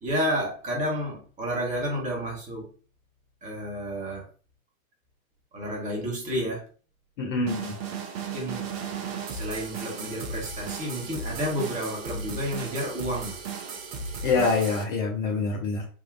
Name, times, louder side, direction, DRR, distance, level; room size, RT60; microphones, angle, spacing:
voice 1, 0.0-2.7 3.4-4.3 5.5-6.6 8.3-8.6 9.3-13.4, equal, 15° right, 1.0 m, -30 dB
voice 2, 7.2-7.8 14.2-15.9, left 4 dB, 35° left, 0.5 m, -25 dB
sound 1, 7.5-14.8, right 5 dB, 45° right, 0.7 m, -35 dB
3.6 x 2.3 x 2.4 m
figure-of-eight pair, 95°, 42 cm